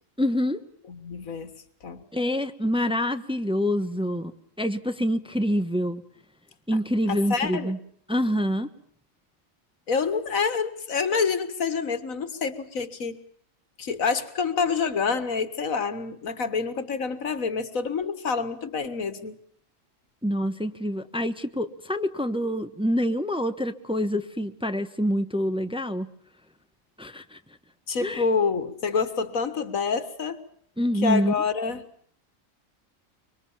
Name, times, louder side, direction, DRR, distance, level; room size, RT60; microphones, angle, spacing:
voice 1, 0.2-0.6 2.1-6.0 6.7-7.8 8.1-8.7 20.2-26.1 27.0-27.4 28.0-28.3 30.8-31.4, equal, 5° right, 8 dB, 1.1 m, -26 dB
voice 2, 0.9-1.5 1.8-2.0 7.1-7.7 9.9-13.2 13.8-19.4 27.9-30.4 31.0-31.8, left 5 dB, 85° left, 12 dB, 2.1 m, -27 dB
25.0 x 24.0 x 7.3 m, 0.64 s
omnidirectional pair, 1.4 m